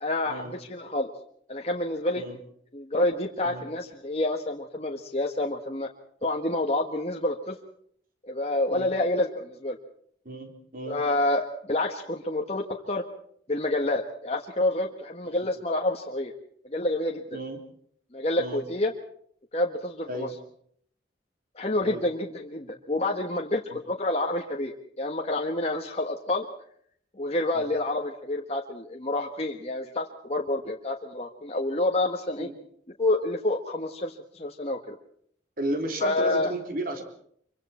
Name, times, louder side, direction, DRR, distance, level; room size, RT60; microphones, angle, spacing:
voice 1, 0.0-1.1 1.5-2.2 2.7-5.9 6.2-7.6 8.2-9.8 10.9-13.0 13.5-16.3 16.6-17.2 18.1-18.9 19.5-20.3 21.5-26.4 27.2-32.5 33.0-35.0 36.0-36.5, left 2 dB, 35° left, 1 dB, 1.5 m, -28 dB
voice 2, 10.3-11.0 15.2-15.4 17.3-17.6 18.4-18.6 20.1-20.4 21.8-22.0 23.7-23.8 27.5-27.7 32.4-32.5 35.6-37.0, right 1 dB, 50° right, 4 dB, 3.7 m, -34 dB
25.5 x 24.0 x 4.4 m, 0.63 s
head